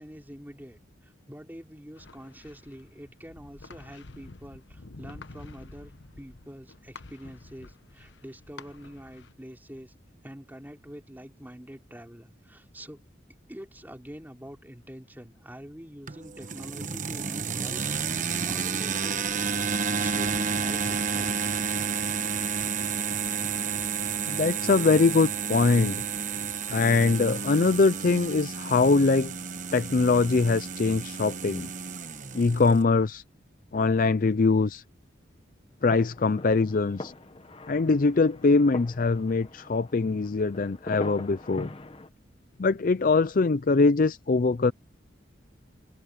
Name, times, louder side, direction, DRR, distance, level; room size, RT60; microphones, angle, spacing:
voice 1, 0.0-9.9 10.2-13.0 13.5-19.6 20.0-21.4, equal, 10° right, 4.0 m, -45 dB
sound 1, 2.0-9.3, left 3 dB, 65° left, 1.1 m, -48 dB
sound 2, 16.1-32.8, right 6 dB, 40° right, 1.2 m, -31 dB
voice 2, 24.3-26.0 26.7-29.3 29.7-31.7 32.3-33.2 33.7-34.8 35.8-37.1 37.7-41.7 42.6-44.7, left 3 dB, 45° left, 0.5 m, -23 dB
sound 3, 35.8-42.1, left 2 dB, 30° left, 1.0 m, -42 dB
head